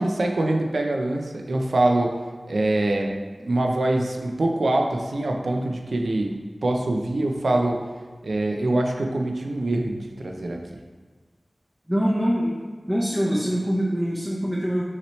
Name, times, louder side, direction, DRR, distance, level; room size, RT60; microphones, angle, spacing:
voice 1, 0.0-2.1 2.5-3.1 3.4-6.3 6.6-7.8 8.2-9.9 10.2-10.8, right 2 dB, 85° right, 2 dB, 0.5 m, -24 dB
voice 2, 11.9-12.6 12.9-14.8, equal, ahead, -5 dB, 0.8 m, -24 dB
5.7 x 3.0 x 3.1 m, 1.5 s
wide cardioid pair, 40°, 0 cm